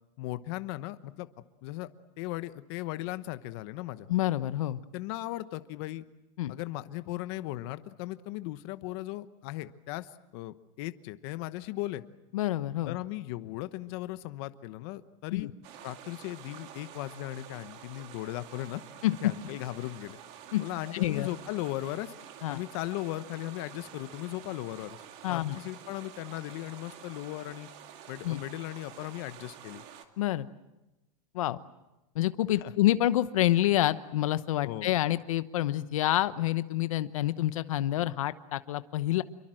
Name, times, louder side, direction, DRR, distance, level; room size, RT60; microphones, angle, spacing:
voice 1, 0.2-1.3 1.6-1.9 2.2-4.1 4.9-6.0 6.5-12.0 12.8-15.5 15.8-18.8 19.2-20.2 20.6-22.1 22.5-25.0 25.3-27.7 28.1-29.8 32.6-32.7 34.6-34.9, left 17 dB, 50° left, 12 dB, 1.1 m, -37 dB
voice 2, 4.1-4.8 6.4-6.5 12.3-13.0 15.3-15.5 19.0-19.3 20.5-20.6 20.9-21.3 22.4-22.6 25.2-25.6 28.2-28.4 30.2-30.5 31.3-31.6 32.1-39.2, left 14 dB, 85° left, 13 dB, 1.0 m, -27 dB
sound 1, 15.6-30.1, right 9 dB, 40° right, 2.4 m, -49 dB
28.0 x 23.5 x 7.8 m, 1.0 s
supercardioid pair, 160°, 17 cm